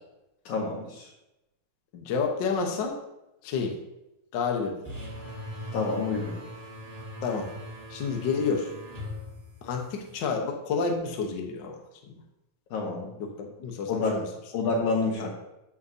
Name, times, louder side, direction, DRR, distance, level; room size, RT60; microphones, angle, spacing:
voice 1, 0.5-1.1 5.7-6.4 12.7-13.1 13.9-14.1 14.5-15.3, left 3 dB, 80° left, -1 dB, 3.1 m, -28 dB
voice 2, 1.9-3.0 3.4-3.8 4.3-4.8 7.2-7.5 7.9-8.7 9.6-11.8 13.2-14.2 15.2-15.3, left 5 dB, 60° left, 2 dB, 1.2 m, -29 dB
sound 1, 4.8-10.2, left 1 dB, 20° right, 2.0 m, -40 dB
13.0 x 5.5 x 2.7 m, 0.91 s
omnidirectional pair, 3.4 m